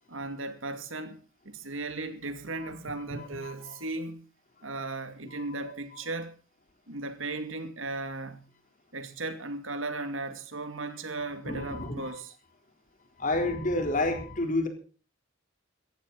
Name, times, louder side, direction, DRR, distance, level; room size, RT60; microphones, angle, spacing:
voice 1, 0.1-4.3 4.6-6.4 6.9-8.5 8.9-12.4, right 2 dB, 85° right, 2.4 m, -36 dB
voice 2, 3.1-3.7 5.6-5.7 11.4-12.1 13.2-14.7, left 2 dB, 40° left, 3.9 m, -30 dB
17.0 x 14.5 x 4.1 m
head